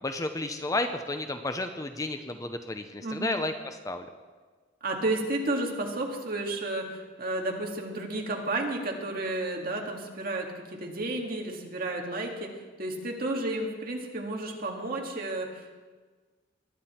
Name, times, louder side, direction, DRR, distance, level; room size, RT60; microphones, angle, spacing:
voice 1, 0.0-4.1, left 2 dB, 15° left, 7 dB, 0.6 m, -32 dB
voice 2, 3.0-3.4 4.8-12.5 12.8-15.7, right 2 dB, 50° right, 1 dB, 1.9 m, -32 dB
21.5 x 9.8 x 4.3 m, 1.4 s
head